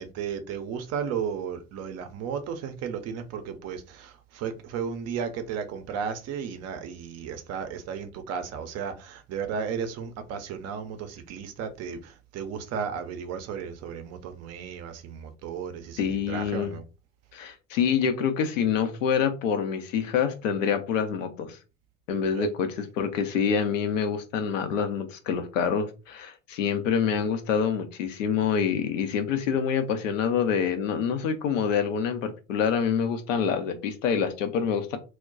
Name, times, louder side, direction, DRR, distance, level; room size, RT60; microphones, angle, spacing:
voice 1, 0.0-16.8 22.3-22.5, right 7 dB, 40° right, 0.6 m, -34 dB
voice 2, 16.0-16.8 17.3-21.6 22.1-35.0, left 7 dB, 70° left, 0.7 m, -26 dB
2.2 x 2.2 x 3.7 m
figure-of-eight pair, 70°, 39 cm